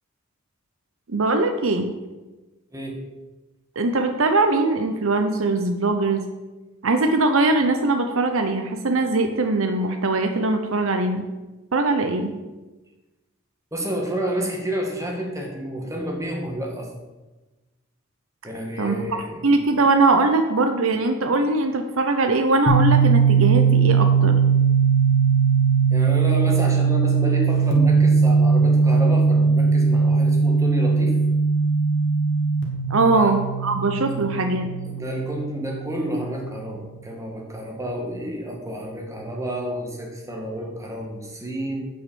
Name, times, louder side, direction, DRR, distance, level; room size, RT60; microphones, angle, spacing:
voice 1, 1.1-1.9 3.8-6.2 6.8-11.2 11.7-12.3 18.8-24.4 32.9-34.7, right 3 dB, 60° right, 6 dB, 0.7 m, -21 dB
voice 2, 13.7-16.9 18.4-19.4 25.9-31.1 33.0-33.3 34.9-41.9, right 1 dB, 15° right, 0 dB, 1.6 m, -30 dB
sound 1, 22.7-36.3, right 5 dB, 55° left, 1.8 m, -19 dB
8.0 x 6.3 x 7.0 m, 1.2 s
head